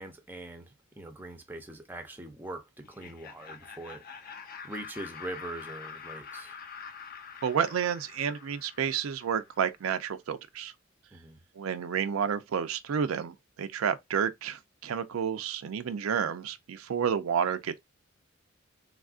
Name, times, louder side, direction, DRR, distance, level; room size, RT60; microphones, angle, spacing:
voice 1, 0.0-4.0 4.4-6.5 11.1-11.4, right 2 dB, 10° right, 0.5 m, -42 dB
Laughter, 2.8-9.6, left 6 dB, 45° left, 0.5 m, -46 dB
voice 2, 7.4-10.7 11.6-17.8, right 7 dB, 90° right, 0.4 m, -30 dB
3.4 x 2.4 x 2.3 m
head